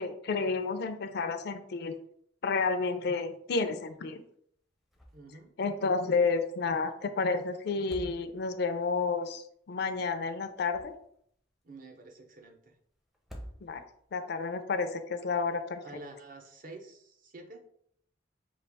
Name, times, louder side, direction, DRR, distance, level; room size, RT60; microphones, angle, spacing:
voice 1, 0.0-1.9 2.4-4.2 5.6-10.9 13.6-13.8 14.1-15.8, left 4 dB, 60° left, 9 dB, 0.4 m, -31 dB
sound 1, 4.9-5.4 5.7-5.8 7.7-8.7 10.4-11.3 13.1-14.1, equal, ahead, 0.5 m, -48 dB
voice 2, 5.1-5.5 11.6-12.7 15.8-17.6, right 2 dB, 45° right, 4 dB, 0.7 m, -48 dB
5.2 x 2.4 x 3.4 m, 0.66 s
head